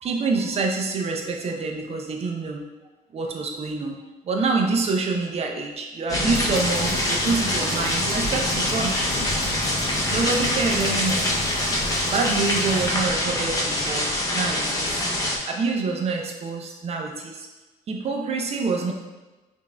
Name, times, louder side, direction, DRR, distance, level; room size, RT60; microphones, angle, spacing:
voice 1, 0.0-2.6 3.1-9.0 10.1-11.3 12.1-17.5 17.9-18.9, right 4 dB, 40° right, 2 dB, 0.5 m, -26 dB
sound 1, 6.1-15.4, left 1 dB, 20° left, 0.6 m, -24 dB
sound 2, 6.3-12.9, left 1 dB, 55° left, 0.9 m, -37 dB
5.1 x 2.5 x 2.2 m, 1.2 s
cardioid pair, 110°, 17 cm